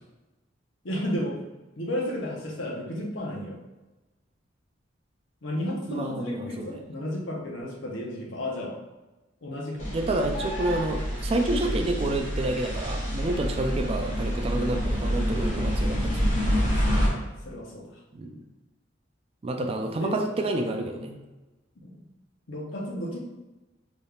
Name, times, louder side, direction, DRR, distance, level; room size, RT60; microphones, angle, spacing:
voice 1, 0.8-1.3 1.8-3.6 5.4-8.7 9.4-10.0 16.5-17.9 20.0-20.4 21.8-22.0 22.5-23.2, left 1 dB, 85° left, -1 dB, 0.9 m, -33 dB
voice 2, 5.9-6.8 9.9-16.3 18.1-18.4 19.4-21.2, right 2 dB, 30° right, 4 dB, 0.3 m, -29 dB
sound 1, 9.8-17.1, equal, 40° left, 1.4 m, -27 dB
4.1 x 3.4 x 2.4 m, 1.1 s
head